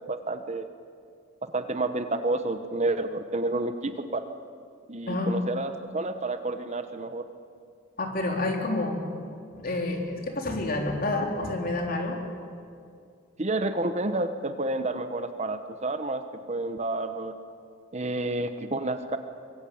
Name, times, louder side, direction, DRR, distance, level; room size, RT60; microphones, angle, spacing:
voice 1, 0.1-0.7 1.5-4.2 4.9-7.2 13.4-17.4 17.9-19.2, right 2 dB, 35° right, 9 dB, 1.1 m, -30 dB
voice 2, 5.1-5.4 8.0-12.2, left 2 dB, 45° left, 2 dB, 3.9 m, -29 dB
24.0 x 23.0 x 8.7 m, 2.3 s
head